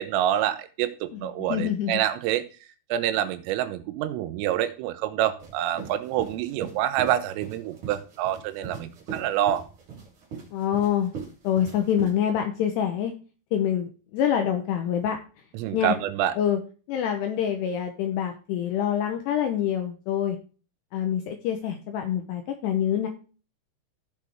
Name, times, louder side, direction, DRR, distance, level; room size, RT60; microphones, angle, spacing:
voice 1, 0.0-2.4 2.9-9.6 15.6-16.3, right 11 dB, 85° right, 12 dB, 3.4 m, -27 dB
voice 2, 1.1-2.0 10.5-11.1 11.4-13.1 13.5-15.2 15.7-16.0 16.4-16.6 16.9-20.4 20.9-23.1, left 9 dB, 85° left, 5 dB, 2.5 m, -26 dB
sound 1, 5.4-12.1, right 6 dB, 40° right, 4.0 m, -40 dB
15.0 x 6.1 x 3.5 m, 0.37 s
omnidirectional pair, 5.8 m